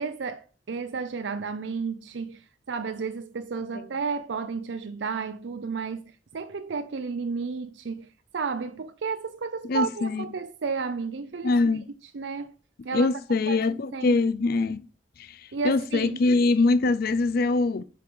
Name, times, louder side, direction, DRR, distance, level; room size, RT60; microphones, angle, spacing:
voice 1, 0.0-6.0 6.3-8.1 8.3-11.8 12.1-12.5 12.8-13.1 13.5-14.2 15.5-16.2, right 5 dB, 75° right, 0.5 m, -32 dB
voice 2, 9.7-10.2 11.4-11.8 12.9-14.8 15.2-15.4 15.6-17.8, left 3 dB, 55° left, 0.4 m, -23 dB
7.8 x 4.7 x 5.2 m
head